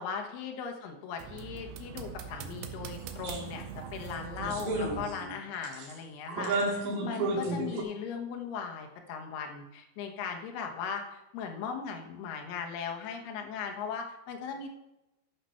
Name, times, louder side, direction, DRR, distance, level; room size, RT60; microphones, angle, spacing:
voice 1, 0.0-3.6 3.9-14.7, left 6 dB, 65° left, 3 dB, 2.9 m, -38 dB
sound 1, 1.2-5.1, right 8 dB, 80° right, 2.2 m, -42 dB
sound 2, 3.2-3.4 3.8-3.9 4.4-5.3 5.6-5.9 6.3-7.8, right 2 dB, 60° right, 2.8 m, -32 dB
14.0 x 5.8 x 5.7 m, 0.95 s
omnidirectional pair, 5.6 m